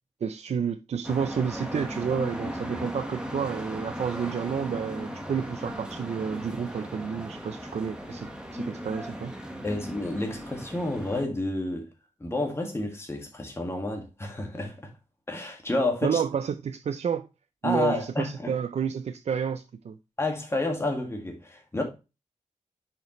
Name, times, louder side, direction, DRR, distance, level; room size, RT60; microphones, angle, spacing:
voice 1, 0.2-9.3 16.0-17.3 17.6-20.0, right 7 dB, 60° right, 0.4 m, -30 dB
sound 1, 1.0-11.2, equal, 5° right, 1.3 m, -37 dB
voice 2, 9.6-11.9 12.2-14.9 15.3-16.2 17.6-18.5 20.2-21.8, left 2 dB, 20° left, 1.9 m, -30 dB
6.7 x 5.0 x 3.0 m
wide cardioid pair, 130°, 12 cm